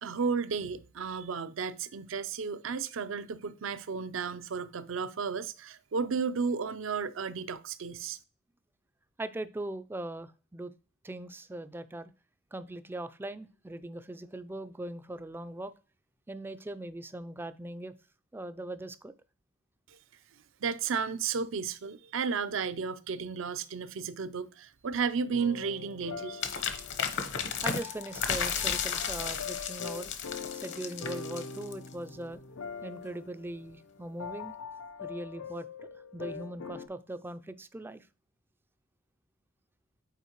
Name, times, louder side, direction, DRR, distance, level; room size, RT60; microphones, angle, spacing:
voice 1, 0.0-8.2 19.9-20.0 20.6-26.8, right 5 dB, 65° right, 0.5 m, -33 dB
voice 2, 9.2-10.7 11.0-12.1 12.5-15.7 16.3-17.9 18.3-19.1 27.6-30.1 30.6-32.4 32.8-34.5 35.0-38.1, right 1 dB, 10° right, 0.3 m, -40 dB
sound 1, 25.3-36.9, left 5 dB, 85° left, 0.5 m, -43 dB
sound 2, 26.4-31.9, left 7 dB, 60° left, 0.9 m, -34 dB
8.2 x 4.5 x 3.0 m
head